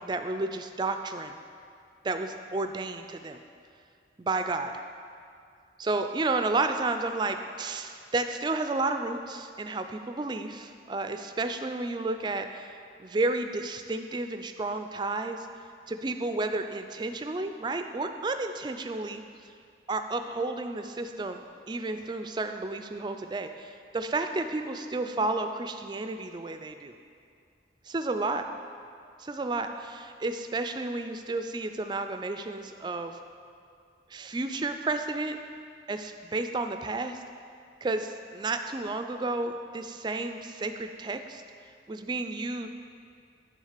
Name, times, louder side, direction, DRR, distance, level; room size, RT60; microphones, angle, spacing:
voice 1, 0.0-1.4 2.0-3.4 4.2-4.7 5.8-15.5 15.9-19.2 19.9-27.0 27.8-28.4 29.2-33.2 34.1-35.4 35.9-37.2 37.8-41.4 41.9-42.7, right 2 dB, 25° right, 7 dB, 0.3 m, -32 dB
9.5 x 3.7 x 6.5 m, 2.3 s
head